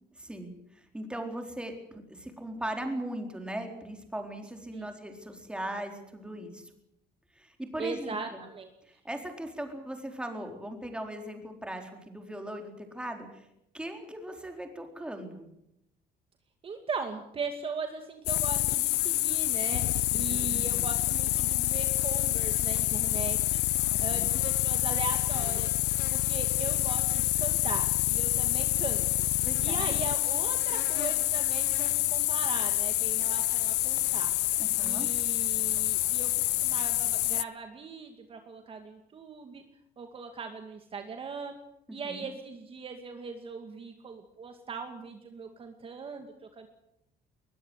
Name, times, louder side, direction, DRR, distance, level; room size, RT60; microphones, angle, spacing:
voice 1, 0.1-6.7 7.3-8.4 8.8-13.5 13.7-15.4 20.1-20.9 23.9-24.4 28.4-28.5 29.4-30.0 34.6-35.1 41.9-42.3, right 1 dB, 5° right, 4 dB, 4.1 m, -39 dB
voice 2, 7.8-8.7 16.6-23.6 24.0-25.7 26.1-34.3 34.8-39.6 40.0-41.5 41.9-46.7, right 5 dB, 30° right, 5 dB, 2.3 m, -39 dB
sound 1, 18.3-37.4, left 17 dB, 80° left, 0.9 m, -27 dB
21.5 x 21.0 x 8.2 m, 0.81 s
cardioid pair, 150°, 17 cm